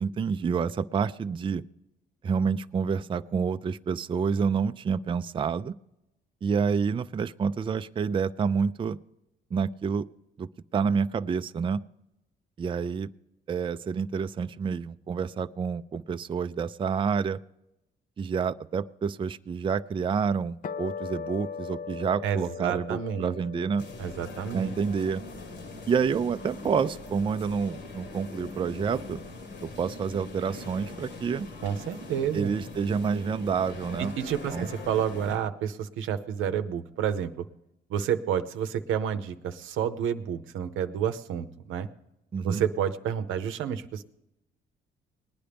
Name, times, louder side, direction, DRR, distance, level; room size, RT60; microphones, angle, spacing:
voice 1, 0.0-1.6 2.2-5.7 6.4-9.0 9.5-10.1 10.4-11.8 12.6-13.1 13.5-17.4 18.2-23.8 24.5-25.2 25.9-29.2 29.6-31.5 32.3-34.1 34.5-34.7 42.3-42.6, right 6 dB, 25° right, 11 dB, 0.4 m, -28 dB
sound 1, 20.6-27.1, left 6 dB, 45° left, 0.5 m, -41 dB
voice 2, 22.2-23.3 24.0-24.7 31.6-32.5 34.0-37.5 37.9-41.9 42.4-44.0, right 8 dB, 85° right, 10 dB, 0.7 m, -30 dB
St Giles, 23.8-35.4, left 2 dB, 60° left, 1.4 m, -42 dB
19.5 x 9.9 x 3.5 m, 0.88 s
cardioid pair, 90°, 20 cm